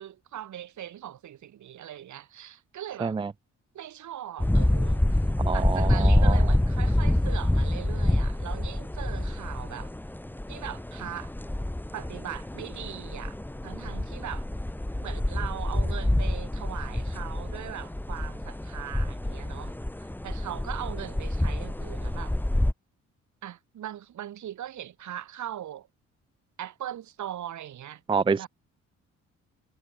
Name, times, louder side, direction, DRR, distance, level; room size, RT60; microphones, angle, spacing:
voice 1, 0.0-3.2 3.7-9.9 10.5-11.3 11.9-13.4 13.6-14.5 15.0-22.3 23.4-25.9 26.6-28.0 28.4-28.5, right 11 dB, 70° right, 7.9 m, -40 dB
voice 2, 3.0-3.3 5.4-6.5 28.1-28.5, right 5 dB, 15° right, 0.4 m, -27 dB
sound 1, 4.4-22.7, left 1 dB, 5° left, 1.8 m, -27 dB
cardioid pair, 90°, 30 cm